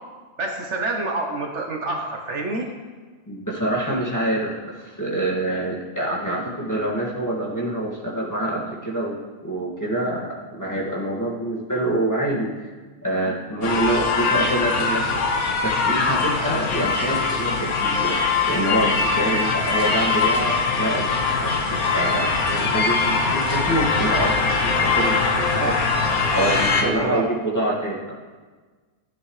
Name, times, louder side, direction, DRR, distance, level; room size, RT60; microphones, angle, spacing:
voice 1, 0.4-2.7 25.6-25.7 26.4-26.5 26.8-27.2, right 2 dB, 55° right, 1 dB, 1.2 m, -27 dB
voice 2, 3.3-12.7 13.0-15.2 15.6-18.2 18.5-24.4 24.6-25.6 26.3-28.1, right 1 dB, 10° left, -5 dB, 2.0 m, -26 dB
sound 1, 13.6-26.8, left 4 dB, 75° left, 1.6 m, -22 dB
15.5 x 9.5 x 3.2 m, 1.4 s
omnidirectional pair, 1.5 m